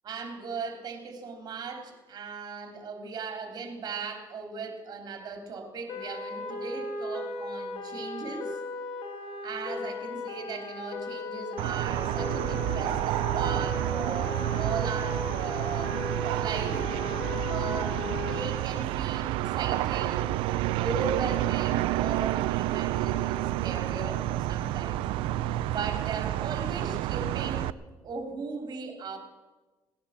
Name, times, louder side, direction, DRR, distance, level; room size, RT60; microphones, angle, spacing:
voice 1, 0.0-8.6 9.4-15.9 16.3-16.8 17.5-20.3 20.8-25.1 25.7-27.7 28.0-29.2, right 4 dB, 50° right, 5 dB, 3.3 m, -37 dB
sound 1, 5.9-18.4, left 3 dB, 90° left, 2.1 m, -37 dB
sound 2, 11.6-27.7, right 15 dB, 85° right, 0.5 m, -29 dB
18.0 x 10.5 x 7.3 m, 1.2 s
cardioid pair, 95°, 9 cm